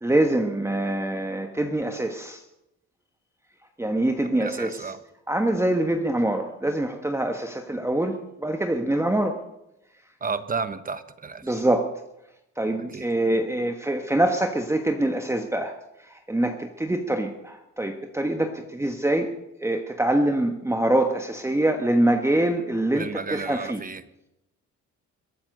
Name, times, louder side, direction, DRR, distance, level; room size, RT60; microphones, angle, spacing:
voice 1, 0.0-2.4 3.8-4.7 5.3-9.4 11.4-11.9 12.6-15.8 16.1-19.3 19.6-23.8, right 1 dB, 10° right, 5 dB, 1.2 m, -24 dB
voice 2, 4.3-5.0 10.2-11.5 12.8-13.1 23.0-24.0, right 5 dB, 30° right, 13 dB, 1.1 m, -32 dB
21.5 x 8.8 x 6.5 m, 0.88 s
cardioid pair, 90°, 30 cm